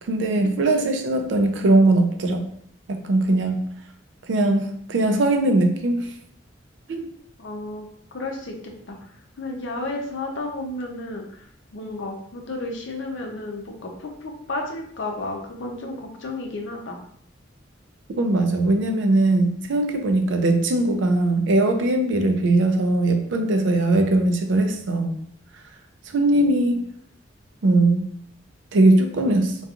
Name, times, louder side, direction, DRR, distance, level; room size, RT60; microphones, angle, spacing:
voice 1, 0.0-2.5 2.9-3.6 4.2-6.1 6.9-7.1 18.2-25.2 26.1-26.9 27.6-28.1 28.7-29.6, right 2 dB, 65° right, 5 dB, 0.4 m, -20 dB
voice 2, 7.4-9.1 9.4-17.0, left 2 dB, 70° left, 2 dB, 0.5 m, -33 dB
2.8 x 2.3 x 2.4 m, 0.63 s
head